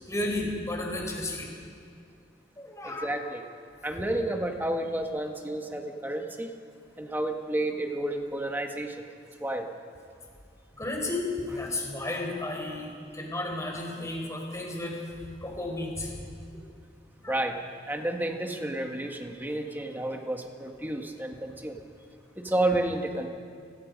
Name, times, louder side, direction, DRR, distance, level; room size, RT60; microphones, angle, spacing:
voice 1, 0.1-1.5 2.6-3.1 10.8-15.0 15.4-16.1 17.2-17.3, left 2 dB, 15° left, 0 dB, 4.5 m, -33 dB
voice 2, 2.8-3.4 3.8-6.5 7.0-9.0 9.4-9.7 17.3-17.6 17.9-21.8 22.4-23.3, right 1 dB, 10° right, 3 dB, 1.7 m, -31 dB
30.0 x 20.0 x 5.3 m, 2.3 s
head